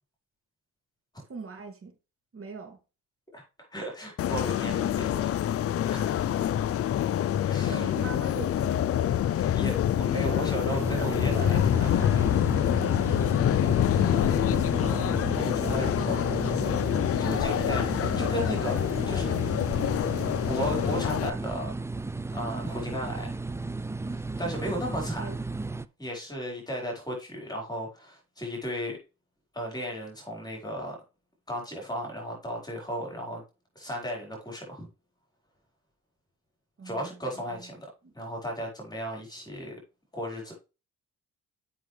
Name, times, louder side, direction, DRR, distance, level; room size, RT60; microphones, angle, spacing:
voice 1, 1.3-1.9 2.3-2.8 5.0-5.2 7.6-8.9 13.9-14.6 15.6-16.7 25.2-25.4 36.8-38.1, right 3 dB, 45° right, 2.8 m, -42 dB
voice 2, 3.7-5.3 5.9-6.3 7.4-7.9 9.3-12.2 14.8-16.5 16.9-19.3 20.4-21.7 22.3-23.3 24.1-25.3 26.0-29.0 29.5-31.0 31.5-33.4 33.7-34.9 36.8-37.8 38.1-39.7 40.1-40.5, equal, 15° left, 4.7 m, -35 dB
sound 1, 4.2-21.3, left 11 dB, 50° left, 0.5 m, -26 dB
sound 2, 10.7-25.9, right 3 dB, 10° right, 0.4 m, -34 dB
7.7 x 6.2 x 3.3 m
cardioid pair, 90°, 30 cm